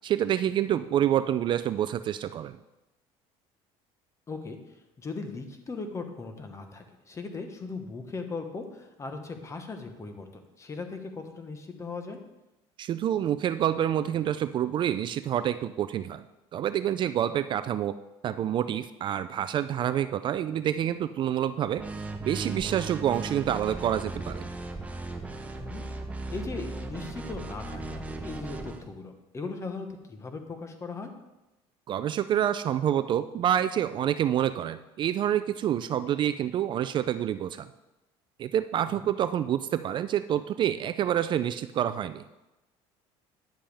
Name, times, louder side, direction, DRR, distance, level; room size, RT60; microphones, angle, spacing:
voice 1, 0.0-2.6 12.8-16.2 16.5-17.9 18.2-21.8 22.2-24.5 31.9-37.7 38.4-42.2, right 10 dB, 40° right, 12 dB, 0.3 m, -27 dB
voice 2, 4.3-4.6 5.0-12.2 25.5-25.9 26.3-31.1 38.8-39.1, left 4 dB, 25° left, 6 dB, 1.1 m, -38 dB
sound 1, 21.8-28.8, right 2 dB, 10° right, 0.9 m, -37 dB
10.0 x 7.6 x 3.5 m, 1.0 s
cardioid pair, 120°, 12 cm